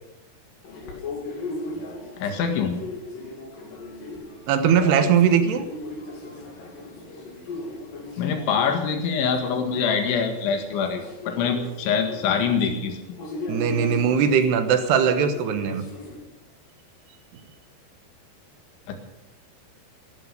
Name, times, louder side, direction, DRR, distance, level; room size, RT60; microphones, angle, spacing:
sound 1, 0.6-16.2, left 2 dB, 50° left, 4.0 m, -37 dB
voice 1, 2.2-2.8 8.2-13.0 18.9-19.0, left 6 dB, 90° left, 5 dB, 4.2 m, -24 dB
voice 2, 4.5-5.6 13.5-15.8, right 7 dB, 75° right, 9 dB, 3.1 m, -20 dB
16.5 x 12.0 x 6.8 m, 0.92 s
omnidirectional pair, 5.2 m